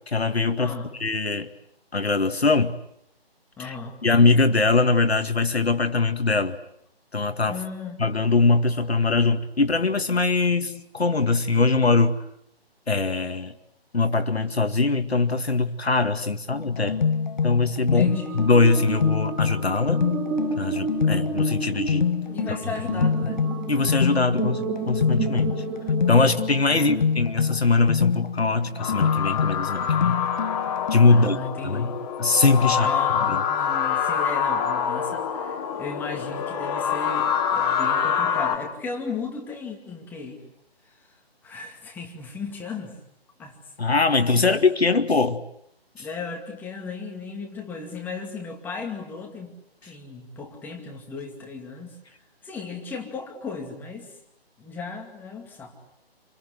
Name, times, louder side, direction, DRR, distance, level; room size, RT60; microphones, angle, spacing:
voice 1, 0.1-0.7 1.0-1.5 1.9-2.8 3.6-3.7 4.0-6.6 7.1-7.6 8.0-12.2 12.9-13.5 13.9-17.0 17.4-20.1 20.6-22.1 22.5-22.6 23.7-25.6 26.1-30.2 30.9-31.4 31.6-31.9 32.2-32.9 33.3-33.4 43.8-45.4 46.0-46.1, left 3 dB, 80° left, 7 dB, 2.1 m, -22 dB
voice 2, 0.6-0.9 3.6-4.0 7.5-8.1 17.8-18.4 22.3-23.5 26.6-27.0 31.1-32.0 32.8-40.4 40.9-41.0 41.4-43.0 43.4-43.6 44.1-44.5 45.9-49.6 49.8-52.0 52.4-54.1 54.6-55.7, left 4 dB, 5° left, 2 dB, 2.3 m, -36 dB
sound 1, 16.5-31.4, left 6 dB, 45° left, 1.3 m, -26 dB
sound 2, 17.9-27.3, right 5 dB, 15° right, 1.6 m, -32 dB
sound 3, 28.8-38.6, left 7 dB, 20° left, 2.5 m, -26 dB
29.0 x 24.0 x 8.1 m, 0.75 s
figure-of-eight pair, 150°, 31 cm